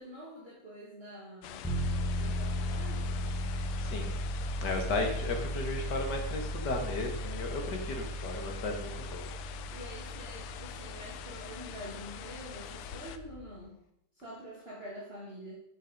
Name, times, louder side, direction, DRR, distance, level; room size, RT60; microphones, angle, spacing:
voice 1, 0.0-1.7 2.1-3.2 9.7-13.8 14.2-15.5, equal, 30° right, -5 dB, 2.3 m, -46 dB
sound 1, 1.4-13.2, left 10 dB, 85° left, 1.7 m, -45 dB
sound 2, 1.6-13.5, equal, 5° left, 1.6 m, -36 dB
voice 2, 3.8-4.1 4.6-9.3, left 2 dB, 50° left, 4 dB, 2.2 m, -35 dB
13.0 x 6.8 x 5.4 m, 0.77 s
omnidirectional pair, 2.4 m